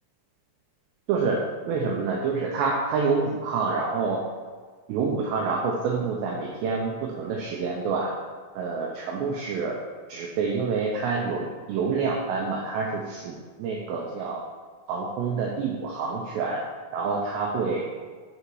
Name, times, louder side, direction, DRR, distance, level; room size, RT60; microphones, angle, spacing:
voice 1, 1.1-4.2 4.9-8.1 8.6-9.8 10.1-14.4 14.9-16.6 16.9-17.8, right 4 dB, 80° right, -1 dB, 2.5 m, -27 dB
7.1 x 6.8 x 4.7 m, 1.5 s
omnidirectional pair, 5.9 m